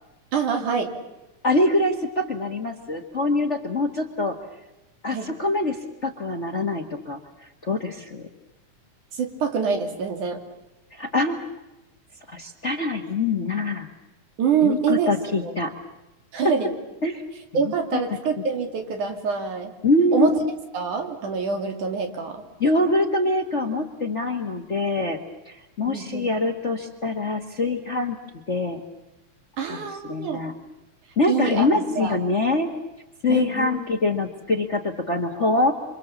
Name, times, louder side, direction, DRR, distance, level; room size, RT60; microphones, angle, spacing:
voice 1, 0.3-0.9 5.1-5.3 9.1-10.4 14.4-15.1 15.4-15.5 16.3-16.7 17.5-19.7 20.1-20.4 20.7-22.4 25.9-26.3 29.6-30.4 31.3-32.2 33.3-33.7, right 6 dB, 90° right, 4 dB, 4.1 m, -25 dB
voice 2, 1.4-4.4 5.0-7.2 7.6-8.3 10.9-11.4 12.3-13.9 14.6-15.7 17.0-17.2 17.5-18.0 19.8-20.4 22.6-28.2 28.5-28.8 29.7-29.8 30.1-30.5 31.2-32.7 33.2-35.7, left 2 dB, 35° left, 4 dB, 1.2 m, -24 dB
27.5 x 26.5 x 7.2 m, 1.0 s
omnidirectional pair, 3.4 m